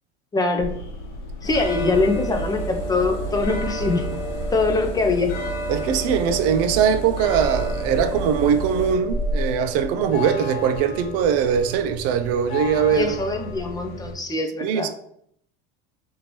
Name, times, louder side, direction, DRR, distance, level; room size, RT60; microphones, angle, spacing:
voice 1, 0.3-0.7 1.4-4.1 4.5-5.3 12.9-14.9, left 3 dB, 10° left, 0.3 m, -23 dB
sound 1, 0.6-14.1, equal, 90° left, 0.9 m, -32 dB
Engine, 1.4-8.9, right 1 dB, 35° left, 0.9 m, -32 dB
voice 2, 5.7-13.2 14.6-14.9, right 8 dB, 50° right, 0.4 m, -21 dB
3.0 x 2.7 x 2.9 m
supercardioid pair, 105°, 33 cm